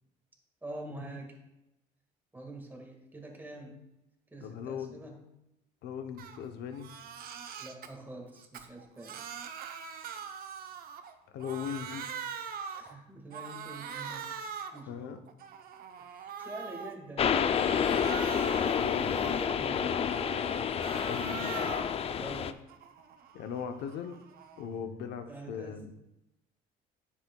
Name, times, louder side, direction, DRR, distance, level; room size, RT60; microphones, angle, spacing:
voice 1, 0.6-1.4 2.3-3.9 4.3-5.3 7.6-9.2 12.7-14.4 14.7-15.2 16.0-18.1 18.5-20.0 22.2-22.6 25.3-25.9, right 1 dB, 10° right, 1 dB, 1.7 m, -46 dB
voice 2, 4.4-5.0 5.8-6.9 11.3-12.0 14.9-15.2 18.8-19.2 19.6-19.8 21.0-21.6 23.3-24.2 24.6-25.9, left 7 dB, 80° left, 8 dB, 0.8 m, -39 dB
Crying sobbing, 6.2-6.4 6.7-7.9 8.4-11.1 11.4-12.9 13.3-14.8 15.3-16.9 17.3-19.7 20.1-22.0 22.4-24.7, right 7 dB, 60° right, 0.7 m, -43 dB
sound 1, 17.2-22.5, left 7 dB, 35° left, 0.4 m, -29 dB
10.0 x 7.5 x 2.3 m, 0.90 s
cardioid pair, 110°, 17 cm